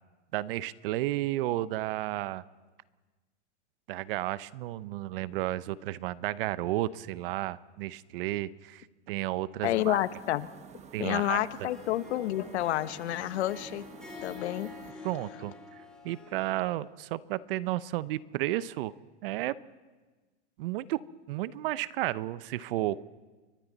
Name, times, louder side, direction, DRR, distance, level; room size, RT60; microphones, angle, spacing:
voice 1, 0.3-2.4 3.9-10.0 10.9-11.4 15.0-18.9 19.2-19.6 20.6-21.0 21.3-23.0, right 15 dB, 50° right, 18 dB, 0.7 m, -32 dB
voice 2, 9.6-10.5 11.0-13.8 14.2-14.7, left 14 dB, 65° left, 14 dB, 1.1 m, -29 dB
sound 1, 9.6-14.9, right 7 dB, 20° right, 1.1 m, -50 dB
Harp, 11.5-16.9, left 5 dB, ahead, 4.1 m, -48 dB
29.5 x 23.5 x 4.1 m, 1.3 s
hypercardioid pair, 135°, 36 cm